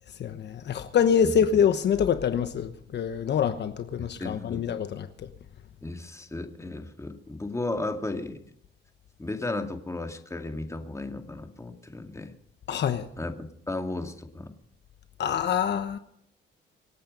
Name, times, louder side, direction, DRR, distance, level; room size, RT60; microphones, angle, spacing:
voice 1, 0.2-5.3 12.7-13.1 15.2-16.0, left 8 dB, 60° left, 1.1 m, -25 dB
voice 2, 4.0-4.6 5.8-8.4 9.2-12.3 13.2-13.3 13.7-14.5, left 2 dB, 15° left, 2.2 m, -34 dB
26.0 x 8.8 x 5.3 m
cardioid pair, 90°, 20 cm